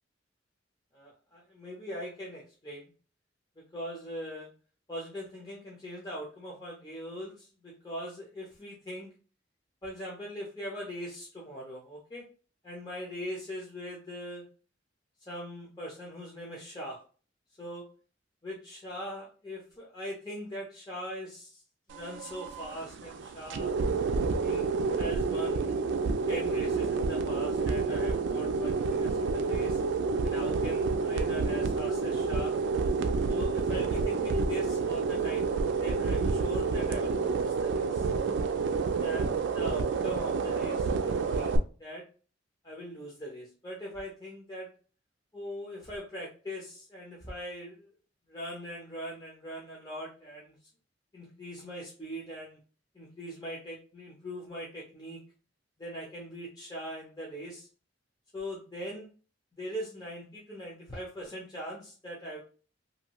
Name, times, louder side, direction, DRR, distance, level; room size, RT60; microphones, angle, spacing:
voice 1, 0.9-2.9 3.7-4.5 4.9-9.1 9.8-12.2 12.6-14.4 15.3-17.0 17.6-17.8 18.4-21.6 21.9-23.7 24.4-29.8 30.2-32.5 33.3-38.1 39.0-39.3 39.5-42.0 42.6-44.7 45.3-47.9 48.3-50.6 51.1-52.6 52.9-55.2 55.8-57.7 58.3-59.1 59.5-62.4, equal, 20° left, -4 dB, 0.6 m, -41 dB
sound 1, 21.9-41.6, right 4 dB, 70° right, 0.3 m, -29 dB
2.7 x 2.3 x 2.9 m, 0.38 s
head